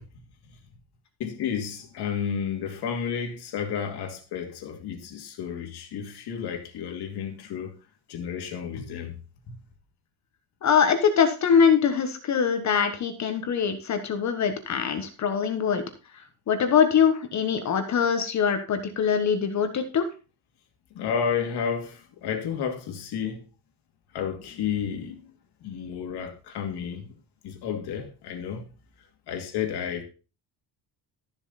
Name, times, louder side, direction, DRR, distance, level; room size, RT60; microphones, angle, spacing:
voice 1, 1.2-7.7 8.1-9.1 9.5-9.6 20.9-23.4 24.1-25.3 25.6-27.1 27.4-28.7 29.3-30.0, left 7 dB, 65° left, 2.5 m, -31 dB
voice 2, 10.6-15.8 16.1-20.1, left 7 dB, 40° left, 1.3 m, -23 dB
13.0 x 7.0 x 4.2 m
cardioid pair, 160°, 42 cm